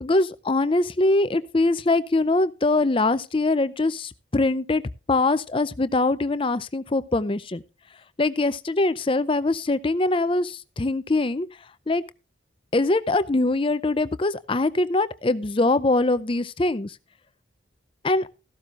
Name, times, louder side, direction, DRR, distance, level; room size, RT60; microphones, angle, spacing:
voice 1, 0.0-4.8 5.1-7.6 8.2-11.5 11.9-12.0 12.7-17.0 18.0-18.3, left 2 dB, 25° left, 0.5 m, -23 dB
14.5 x 12.0 x 2.5 m
head